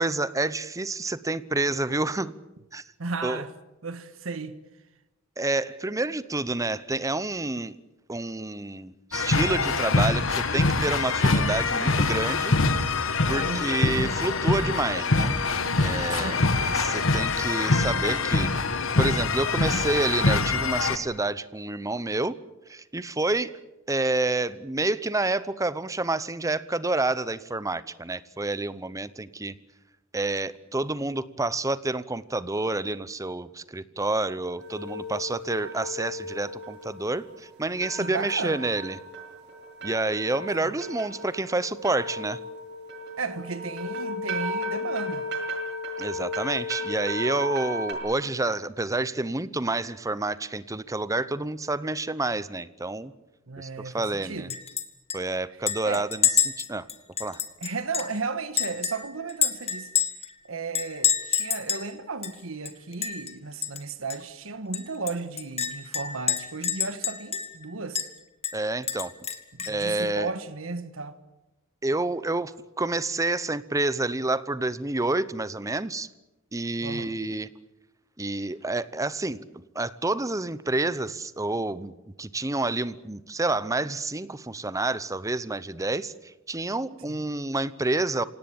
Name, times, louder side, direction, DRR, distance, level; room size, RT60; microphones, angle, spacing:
voice 1, 0.0-2.3 2.7-2.8 3.2-3.4 5.4-7.8 8.1-12.5 13.3-15.3 15.8-16.4 16.7-18.5 19.0-22.4 22.7-23.5 23.9-29.6 30.1-39.0 39.8-42.4 46.0-53.1 53.6-54.5 55.1-56.3 56.6-56.9 57.2-57.4 68.5-69.1 69.7-70.3 71.8-76.1 76.5-77.5 78.2-88.2, right 2 dB, 15° right, 0.8 m, -29 dB
voice 2, 3.0-3.5 3.8-4.6 13.4-13.7 16.1-16.5 38.0-38.6 40.6-40.7 43.2-45.3 53.5-54.6 55.8-56.1 57.6-59.9 60.4-68.1 69.5-71.2 76.8-77.2 87.1-87.2, right 4 dB, 80° right, 1.4 m, -34 dB
sound 1, 9.1-21.0, left 3 dB, 70° left, 1.6 m, -24 dB
sound 2, 34.6-47.9, left 1 dB, 60° right, 7.6 m, -35 dB
Chink clink, 54.5-54.8 55.1-55.2 55.7-58.2 58.6-60.3 60.7-61.9 62.2-62.3 62.7-63.3 63.6-63.8 64.1-64.2 64.7-67.6 68.0-68.1 68.4-69.8, left 8 dB, 30° left, 1.8 m, -28 dB
27.0 x 18.0 x 8.8 m
head